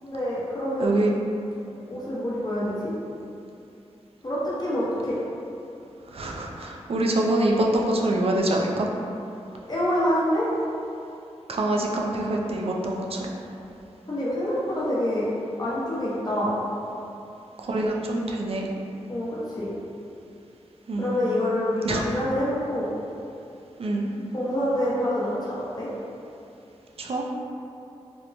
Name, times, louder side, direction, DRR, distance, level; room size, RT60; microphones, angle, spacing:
voice 1, 0.0-1.0 1.9-2.9 4.2-5.2 9.7-10.5 14.1-15.3 15.6-16.5 19.1-19.7 21.0-22.9 24.3-25.9, equal, 35° left, -9 dB, 0.8 m, -26 dB
voice 2, 0.8-1.1 6.1-8.9 11.5-13.3 17.6-18.7 20.9-21.2 21.8-22.0 23.8-24.2 27.0-27.3, right 1 dB, 55° right, -1 dB, 0.4 m, -25 dB
2.9 x 2.1 x 2.5 m, 2.7 s
wide cardioid pair, 65°, 12 cm